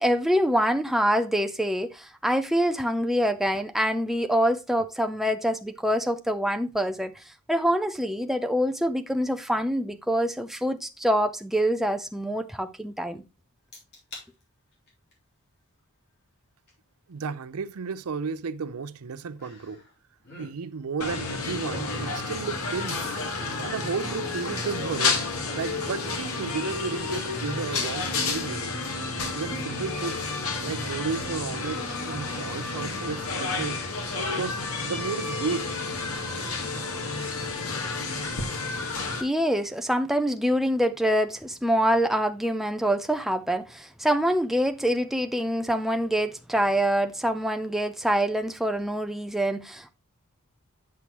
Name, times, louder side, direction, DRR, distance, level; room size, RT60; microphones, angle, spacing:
voice 1, 0.0-13.2 39.2-49.9, equal, ahead, 0.5 m, -25 dB
sound 1, 13.7-14.3 14.7-15.1 16.7-16.8 19.4-19.9 20.2-20.5 21.3-22.4 22.9-24.4 24.9-25.4 25.8-25.9, left 2 dB, 50° left, 3.3 m, -47 dB
voice 2, 17.1-19.8 20.4-23.2 23.6-25.3 25.5-28.8 29.3-33.8 34.3-35.7, right 5 dB, 75° right, 0.5 m, -33 dB
sound 2, 21.0-39.2, left 3 dB, 75° left, 1.6 m, -30 dB
8.4 x 6.0 x 3.0 m
head